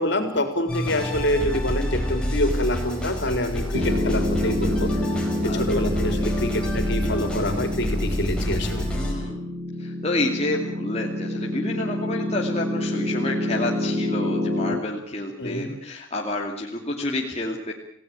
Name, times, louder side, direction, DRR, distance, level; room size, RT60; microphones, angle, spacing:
voice 1, 0.0-4.9 5.4-8.8 15.4-15.7, left 1 dB, 55° left, 7 dB, 4.2 m, -26 dB
sound 1, 0.7-9.1, equal, 5° left, 5.0 m, -28 dB
Piano, 3.7-14.8, left 1 dB, 75° right, 5.5 m, -27 dB
voice 2, 8.8-9.4 9.8-17.7, left 2 dB, 30° left, 0 dB, 2.4 m, -29 dB
27.5 x 17.5 x 8.9 m, 0.69 s
head